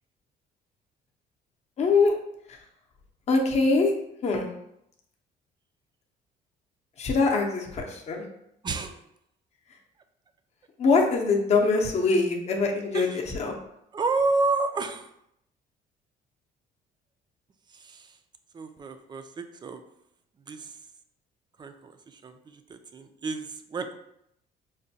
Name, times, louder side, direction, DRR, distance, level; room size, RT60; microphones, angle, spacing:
voice 1, 1.8-2.1 3.3-3.9 4.2-4.5 7.0-8.3 10.8-13.1 13.4-13.6, left 3 dB, 40° left, 2 dB, 0.7 m, -23 dB
voice 2, 8.6-9.0 12.9-13.3 13.9-15.1 17.7-18.2 18.5-19.8 20.5-20.8 21.6-23.9, right 3 dB, 25° right, 7 dB, 0.4 m, -30 dB
5.0 x 2.2 x 2.7 m, 0.77 s
cardioid pair, 110°, 17 cm